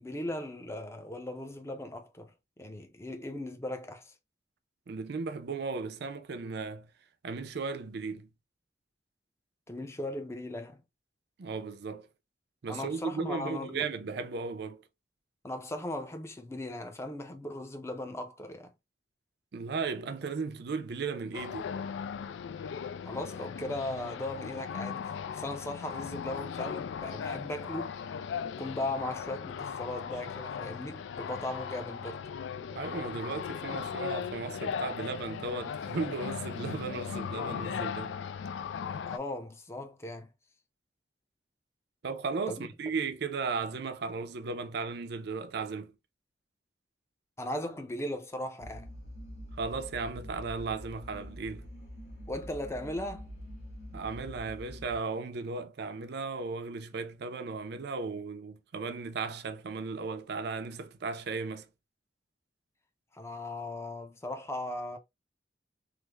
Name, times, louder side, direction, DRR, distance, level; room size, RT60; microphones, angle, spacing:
voice 1, 0.0-2.3 2.6-4.1 9.7-10.8 12.7-13.8 15.4-18.7 23.1-28.0 28.6-32.3 39.1-40.3 42.5-42.7 47.4-48.9 52.3-53.3 63.1-65.0, left 1 dB, 15° left, 0.5 m, -38 dB
voice 2, 4.9-6.9 7.2-8.3 11.4-12.1 12.6-14.8 19.5-21.7 32.7-38.2 42.0-45.9 49.6-51.7 53.9-61.7, right 4 dB, 65° right, 0.5 m, -36 dB
sound 1, 21.3-39.2, left 7 dB, 90° left, 0.3 m, -38 dB
sound 2, 48.6-55.0, equal, 60° left, 1.2 m, -45 dB
3.3 x 2.1 x 3.3 m
head